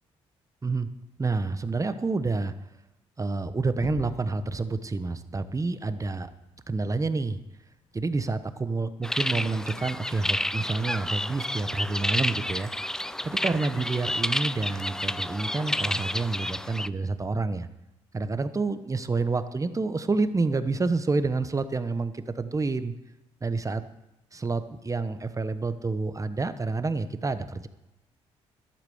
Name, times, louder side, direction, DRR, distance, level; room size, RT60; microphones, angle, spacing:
voice 1, 1.2-2.5 3.2-6.3 6.7-7.4 7.9-12.7 13.2-17.7 18.1-22.9 23.4-23.8 24.3-27.7, right 3 dB, 25° right, 11 dB, 1.0 m, -28 dB
Gunshot gunfire / Fireworks / Boom, 3.8-8.6, left 8 dB, 75° left, 1.1 m, -47 dB
sound 1, 9.0-16.9, left 1 dB, 5° left, 0.4 m, -30 dB
12.0 x 8.2 x 7.2 m, 0.92 s
supercardioid pair, 65°, 13 cm